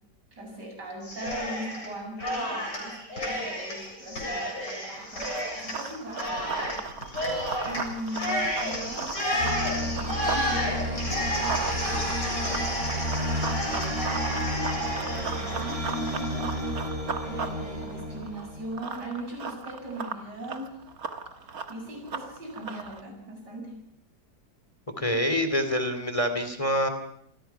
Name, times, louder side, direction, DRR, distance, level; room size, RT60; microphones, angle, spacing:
voice 1, 0.3-5.3 5.5-6.8 7.6-12.6 13.1-20.8 21.7-23.8, right 1 dB, 80° right, 1 dB, 8.4 m, -40 dB
Cheering, 1.0-1.9 2.2-16.6, equal, 90° left, 8.2 m, -31 dB
Run, 5.0-10.5 10.8-23.0, right 5 dB, 55° right, 2.0 m, -37 dB
sound 1, 9.4-18.8, equal, 35° right, 6.2 m, -32 dB
voice 2, 25.0-26.9, equal, 20° left, 7 dB, 2.7 m, -26 dB
27.5 x 21.0 x 5.8 m, 0.68 s
omnidirectional pair, 1.8 m